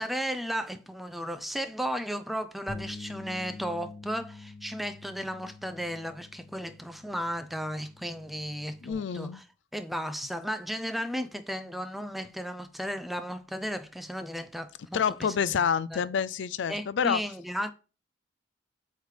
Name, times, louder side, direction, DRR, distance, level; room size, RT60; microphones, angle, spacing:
voice 1, 0.0-9.4 9.7-15.6 15.9-16.0 16.7-17.7, equal, ahead, 0.5 m, -34 dB
sound 1, 2.7-8.9, left 3 dB, 50° left, 1.2 m, -46 dB
voice 2, 8.8-9.4 14.9-17.2, left 7 dB, 75° left, 0.4 m, -28 dB
7.9 x 3.3 x 4.8 m
head